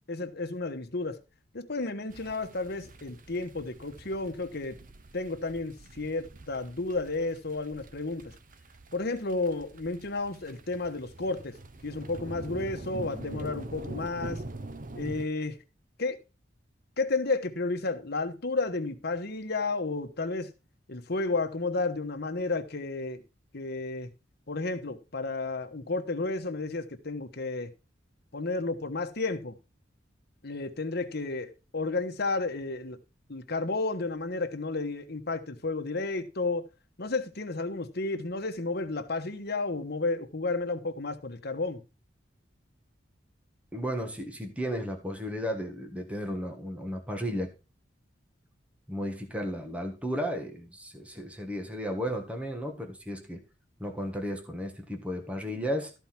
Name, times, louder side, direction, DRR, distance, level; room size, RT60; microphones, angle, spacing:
voice 1, 0.1-1.2 1.5-4.8 5.1-8.3 8.9-11.6 11.8-14.4 14.9-15.6 16.0-16.2 17.0-20.5 20.9-23.2 23.5-24.1 24.5-27.7 28.3-29.6 30.4-33.0 33.3-36.7 37.0-41.8, left 3 dB, 60° left, 1.3 m, -32 dB
sound 1, 2.1-15.3, right 2 dB, 45° right, 0.9 m, -44 dB
voice 2, 43.7-47.5 48.9-53.4 53.8-55.9, equal, 5° right, 1.5 m, -34 dB
13.5 x 4.6 x 5.9 m
head